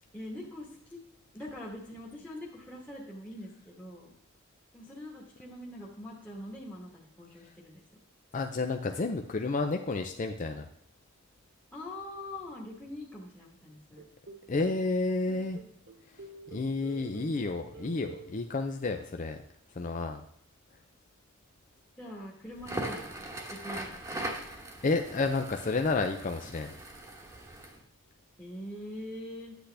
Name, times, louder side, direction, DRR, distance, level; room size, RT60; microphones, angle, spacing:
voice 1, 0.1-1.0 1.3-4.1 4.7-7.8 11.7-14.0 22.0-23.1 23.5-24.3 28.4-29.6, left 1 dB, 10° left, -5 dB, 1.4 m, -43 dB
voice 2, 8.3-10.7 14.5-15.6 16.5-19.4 19.8-20.2 24.4-26.7, left 3 dB, 40° left, 5 dB, 0.5 m, -31 dB
sound 1, 14.0-14.8 15.2-17.5 17.7-18.3, right 3 dB, 60° right, 1.4 m, -49 dB
Crackle, 22.5-27.8, right 1 dB, 15° right, 1.1 m, -40 dB
9.9 x 8.2 x 3.4 m, 0.72 s
head